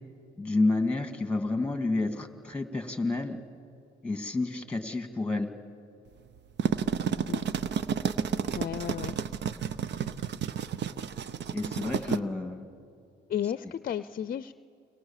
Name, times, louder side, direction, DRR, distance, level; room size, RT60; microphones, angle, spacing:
voice 1, 0.4-3.4 4.0-5.5 11.5-12.6, left 2 dB, 5° left, 7 dB, 2.3 m, -29 dB
sound 1, 6.4-12.2, right 7 dB, 60° right, 0.8 m, -31 dB
voice 2, 8.5-9.2 12.0-12.2 13.3-14.5, left 9 dB, 45° left, 14 dB, 0.6 m, -33 dB
29.5 x 23.0 x 7.4 m, 2.5 s
cardioid pair, 90°, 20 cm